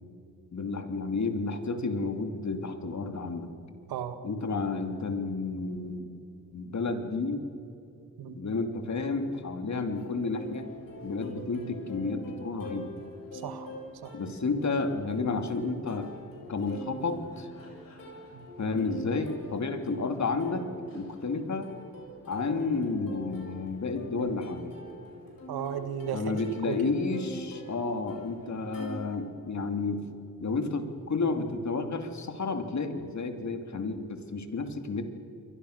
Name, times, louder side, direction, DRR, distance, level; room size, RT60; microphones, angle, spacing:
voice 1, 0.5-3.5 4.2-6.2 6.5-7.4 8.3-10.7 11.0-12.9 14.1-16.1 16.5-17.5 18.6-20.7 20.9-21.7 22.3-24.7 26.1-30.0 30.4-35.0, left 3 dB, 50° left, 6 dB, 2.8 m, -31 dB
Plucked string instrument, 10.0-28.9, left 1 dB, 65° left, 8.0 m, -45 dB
voice 2, 13.4-13.7 14.0-14.1 18.3-18.5 25.5-26.9, right 8 dB, 90° right, 10 dB, 1.7 m, -35 dB
30.0 x 23.0 x 6.7 m, 2.7 s
cardioid pair, 65°, 36 cm